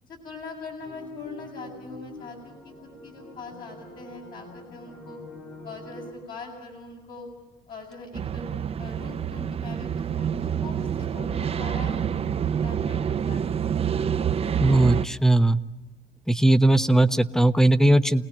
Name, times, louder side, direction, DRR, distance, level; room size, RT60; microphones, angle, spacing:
voice 1, 0.0-5.2 5.6-7.3 7.7-8.4 8.8-13.8 14.2-14.4, left 3 dB, 55° left, -1 dB, 7.8 m, -42 dB
sound 1, 0.8-6.1, left 2 dB, 75° left, 6.1 m, -44 dB
sound 2, 8.1-15.1, right 8 dB, 35° right, 0.8 m, -27 dB
voice 2, 14.6-15.6 16.3-18.3, right 1 dB, 5° left, 12 dB, 1.0 m, -19 dB
29.0 x 19.0 x 7.4 m, 1.1 s
cardioid pair, 110°, 17 cm